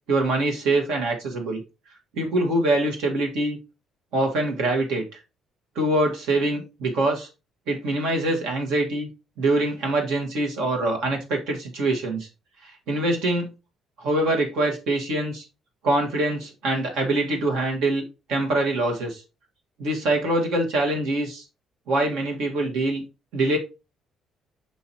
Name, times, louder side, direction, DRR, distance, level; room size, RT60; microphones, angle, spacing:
voice 1, 0.1-1.6 2.1-3.6 4.1-5.1 5.8-7.3 7.7-9.1 9.4-12.3 12.6-13.5 14.0-15.4 15.8-18.0 18.3-19.2 19.8-21.4 21.9-23.0 23.3-23.6, right 2 dB, 60° right, 2 dB, 1.8 m, -24 dB
6.2 x 5.6 x 2.9 m, 0.28 s
figure-of-eight pair, 45°, 0 cm